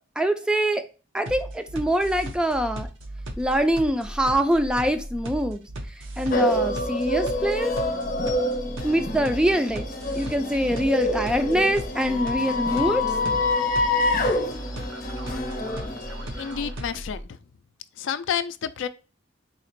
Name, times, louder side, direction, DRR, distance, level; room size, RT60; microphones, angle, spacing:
voice 1, 0.2-0.8 1.1-2.9 3.4-5.6 6.2-7.7 8.8-9.9 10.2-13.0, equal, 5° right, 0.3 m, -24 dB
sound 1, 1.3-17.2, right 1 dB, 90° right, 0.8 m, -36 dB
sound 2, 6.3-16.7, left 2 dB, 50° left, 0.7 m, -27 dB
voice 2, 16.4-17.4 18.0-18.9, left 8 dB, 70° left, 0.3 m, -29 dB
4.1 x 2.8 x 3.0 m
head